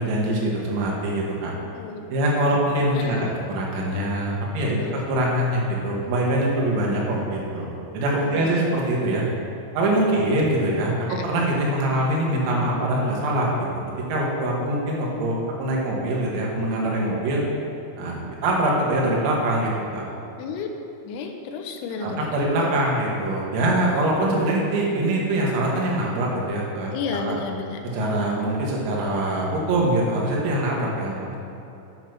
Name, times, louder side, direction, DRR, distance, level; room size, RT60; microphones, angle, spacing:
voice 1, 0.0-1.5 2.1-9.2 9.8-13.5 14.1-17.4 18.0-20.1 22.0-27.4 27.9-31.4, right 1 dB, 85° right, -3 dB, 4.5 m, -23 dB
voice 2, 2.9-3.3 4.7-5.3 8.2-8.9 10.1-10.2 10.5-10.6 11.1-11.3 20.4-20.7 21.0-22.3 26.9-27.9, left 5 dB, 75° left, 4 dB, 3.1 m, -33 dB
10.0 x 7.0 x 6.1 m, 2.8 s
omnidirectional pair, 6.0 m